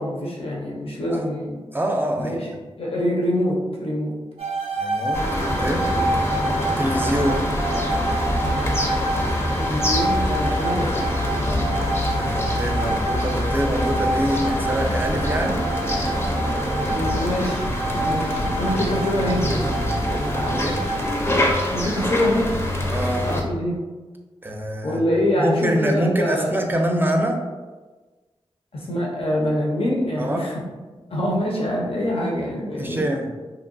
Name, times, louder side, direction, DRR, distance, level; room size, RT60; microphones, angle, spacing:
voice 1, 0.0-1.6 2.2-2.5 2.8-4.1 9.6-11.1 16.9-20.7 21.7-22.5 23.2-23.8 24.8-26.6 28.7-30.6 31.1-33.0, left 1 dB, 65° left, -3 dB, 0.7 m, -25 dB
voice 2, 1.7-2.6 4.8-5.2 5.6-5.8 6.8-7.4 12.1-15.6 18.6-18.8 20.6-20.8 21.8-21.9 22.9-23.3 24.4-25.0 25.4-27.4 30.2-30.4 32.8-33.3, right 1 dB, 20° right, 2 dB, 0.4 m, -25 dB
sound 1, 4.4-21.1, right 2 dB, 85° right, 0.4 m, -28 dB
sound 2, 5.1-23.4, left 1 dB, 25° left, 0.6 m, -25 dB
2.8 x 2.2 x 2.5 m, 1.3 s
cardioid pair, 45°, 10 cm